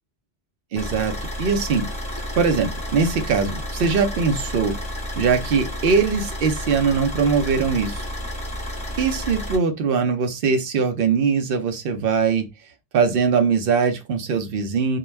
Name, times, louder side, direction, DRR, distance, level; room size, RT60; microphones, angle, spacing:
voice 1, 0.7-1.9 2.4-4.7 5.2-8.1 9.0-12.5 12.9-15.0, right 5 dB, 65° right, 0.8 m, -21 dB
Car / Idling, 0.8-9.6, equal, 5° left, 0.7 m, -31 dB
2.2 x 2.1 x 3.1 m
omnidirectional pair, 1.1 m